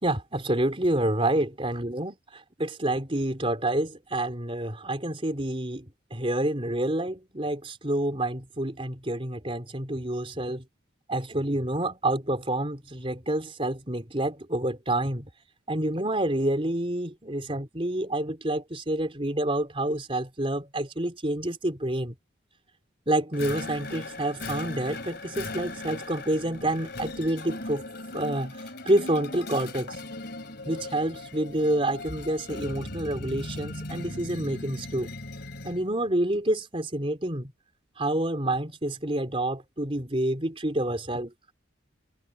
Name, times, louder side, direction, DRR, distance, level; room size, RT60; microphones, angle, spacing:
voice 1, 0.0-10.6 11.1-15.3 15.7-22.1 23.1-27.8 28.1-30.0 30.7-35.1 35.6-37.5 38.0-41.3, right 1 dB, 30° right, 3.5 m, -28 dB
sound 1, 23.3-35.9, left 2 dB, 55° left, 3.5 m, -38 dB
head